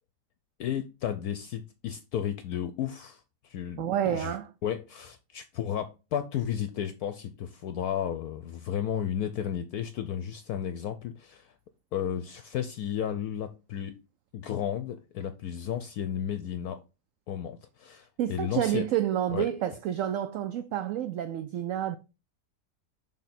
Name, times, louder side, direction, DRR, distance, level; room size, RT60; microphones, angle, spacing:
voice 1, 0.6-4.4 4.6-11.5 11.9-14.0 14.3-16.8 17.3-18.9 19.3-19.5, left 9 dB, 70° left, 1.0 m, -33 dB
voice 2, 3.8-4.5 18.2-22.0, right 11 dB, 70° right, 0.7 m, -29 dB
6.5 x 3.5 x 5.8 m
omnidirectional pair, 1.8 m